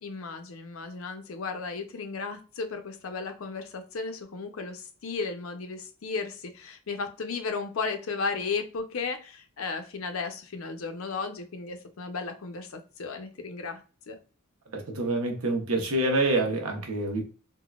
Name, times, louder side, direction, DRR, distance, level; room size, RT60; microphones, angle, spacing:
voice 1, 0.0-14.2, left 4 dB, 70° left, 7 dB, 0.6 m, -35 dB
voice 2, 14.7-17.2, right 2 dB, 80° right, 3 dB, 0.9 m, -27 dB
3.8 x 2.1 x 2.3 m, 0.36 s
head